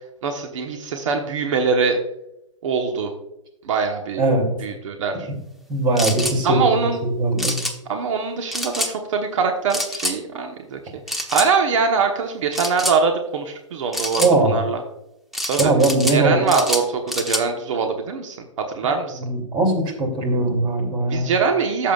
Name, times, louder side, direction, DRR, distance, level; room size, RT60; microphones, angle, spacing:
voice 1, 0.2-2.0 2.6-3.1 3.6-4.2 4.6-5.3 6.4-7.0 7.9-10.8 11.1-14.8 15.5-15.7 16.1-18.4 18.7-19.2 21.1-21.9, right 5 dB, 70° right, 3 dB, 1.2 m, -23 dB
voice 2, 4.2-4.6 5.7-7.6 14.2-14.6 15.6-16.5 18.8-21.3, right 2 dB, 30° right, 2 dB, 2.9 m, -20 dB
sound 1, 6.0-6.4 7.4-7.7 8.5-8.9 9.7-10.2 11.1-11.5 12.5-13.0 13.9-14.3 15.3-16.2 16.5-17.4, left 1 dB, ahead, 1.0 m, -26 dB
14.0 x 7.3 x 2.4 m, 0.88 s
hypercardioid pair, 130°, 17 cm